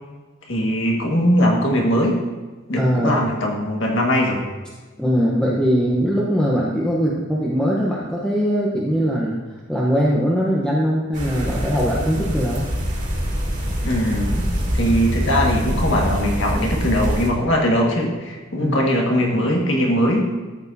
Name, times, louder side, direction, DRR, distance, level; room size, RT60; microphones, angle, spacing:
voice 1, 0.5-2.2 2.7-4.4 13.8-14.5 14.7-20.3, equal, 65° left, 0 dB, 1.8 m, -20 dB
voice 2, 2.8-3.1 5.0-9.4 9.7-12.7 18.6-18.8, equal, 5° left, -5 dB, 0.9 m, -21 dB
sound 1, 11.1-17.3, equal, 40° right, 2.3 m, -24 dB
13.5 x 7.9 x 2.8 m, 1.3 s
head